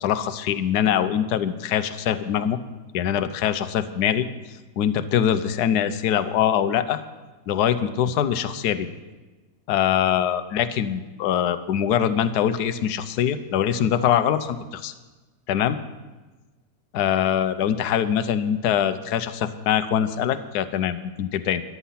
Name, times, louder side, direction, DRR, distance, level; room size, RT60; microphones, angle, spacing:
voice 1, 0.0-2.6 2.9-4.3 4.8-7.0 7.5-8.9 9.7-14.9 15.5-15.8 16.9-21.6, left 9 dB, 75° left, 11 dB, 1.3 m, -23 dB
14.0 x 11.0 x 5.8 m, 1.2 s
omnidirectional pair, 1.8 m